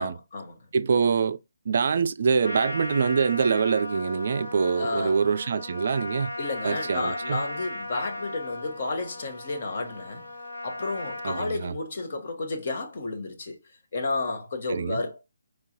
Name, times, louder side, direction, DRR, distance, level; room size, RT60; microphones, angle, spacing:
voice 1, 0.0-0.5 4.8-5.2 6.4-10.2 10.6-13.6 13.9-15.2, left 3 dB, 50° left, 1.3 m, -31 dB
voice 2, 0.7-1.4 1.7-6.3 6.6-7.4 11.2-11.7 14.7-15.0, right 5 dB, 50° right, 0.3 m, -25 dB
Trumpet, 2.4-11.5, left 2 dB, 90° left, 1.2 m, -37 dB
4.7 x 3.6 x 2.9 m
figure-of-eight pair, 145°, 0 cm